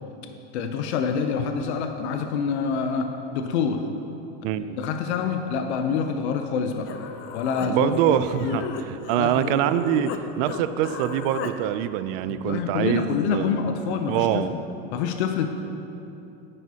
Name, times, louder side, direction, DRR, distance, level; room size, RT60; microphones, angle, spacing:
voice 1, 0.5-3.8 4.8-6.9 7.3-8.2 8.4-8.7 9.1-9.6 12.3-14.4 14.8-15.5, left 6 dB, 85° left, 6 dB, 0.7 m, -26 dB
voice 2, 4.4-4.8 7.7-13.5 14.1-14.5, right 11 dB, 55° right, 12 dB, 0.5 m, -24 dB
Human voice, 6.5-6.6 6.9-10.2 10.5-11.5, left 7 dB, 40° left, 0.5 m, -36 dB
9.8 x 9.3 x 2.8 m, 2.9 s
supercardioid pair, 140°, 33 cm